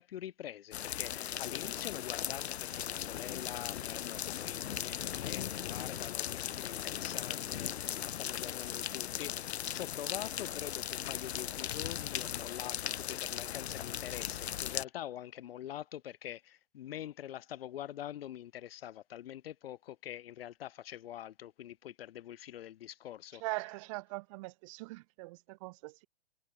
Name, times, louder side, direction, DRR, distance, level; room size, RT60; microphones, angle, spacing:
voice 1, 0.0-23.4, left 12 dB, 65° left, 1.8 m, -45 dB
sound 1, 0.7-14.8, left 10 dB, 85° left, 0.8 m, -38 dB
voice 2, 23.4-26.1, right 24 dB, 30° right, 0.5 m, -41 dB
hypercardioid pair, 140°, 32 cm